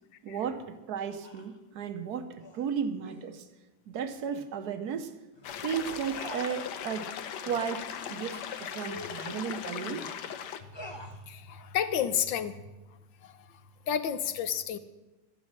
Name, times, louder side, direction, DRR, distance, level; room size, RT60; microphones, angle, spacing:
voice 1, 0.2-3.5 3.9-5.1 5.6-7.1 7.4-10.1, right 7 dB, 60° right, 10 dB, 1.4 m, -34 dB
sound 1, 1.2-1.6 2.4-2.7 3.0-3.3 4.3-4.5 4.9-5.0 5.3-5.5 6.1-7.1 7.4-7.6 8.1-8.2 8.7-10.1 10.7-11.2 11.9-12.2, left 2 dB, 20° left, 0.8 m, -46 dB
sound 2, 5.4-10.6, left 8 dB, 70° left, 1.4 m, -38 dB
voice 2, 11.3-12.5 13.2-13.5 13.9-14.8, left 9 dB, 90° left, 11 dB, 1.6 m, -30 dB
13.5 x 9.7 x 7.5 m, 1.2 s
omnidirectional pair, 1.9 m